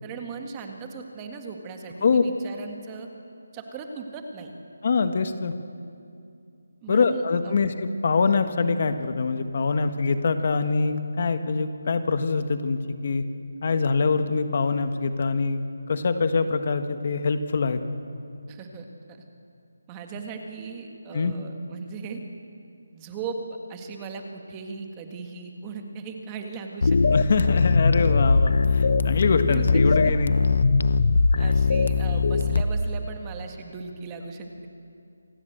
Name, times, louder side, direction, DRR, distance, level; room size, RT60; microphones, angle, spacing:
voice 1, 0.0-3.1 3.5-4.5 6.8-7.6 18.5-19.2 19.9-22.2 22.9-27.0 29.5-30.1 31.4-34.7, right 5 dB, 15° right, 4 dB, 1.7 m, -38 dB
voice 2, 4.8-5.5 6.9-13.2 13.6-15.6 15.9-17.8 21.1-21.3 27.1-30.4, left 4 dB, 40° left, 9 dB, 1.4 m, -24 dB
sound 1, 26.8-32.6, left 4 dB, 60° left, 1.0 m, -20 dB
27.0 x 18.0 x 8.0 m, 2.4 s
figure-of-eight pair, 170°, 0 cm